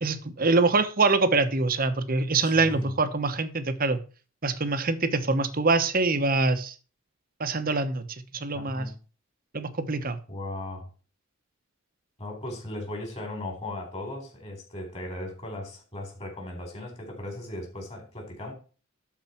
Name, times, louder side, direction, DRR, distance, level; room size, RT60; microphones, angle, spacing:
voice 1, 0.0-4.0 4.4-6.7 7.4-8.9 9.5-10.2, right 3 dB, 45° right, 1.1 m, -24 dB
voice 2, 2.4-2.9 8.5-9.0 10.3-10.9 12.2-18.5, left 1 dB, 30° left, 4.0 m, -37 dB
12.0 x 4.9 x 4.4 m
head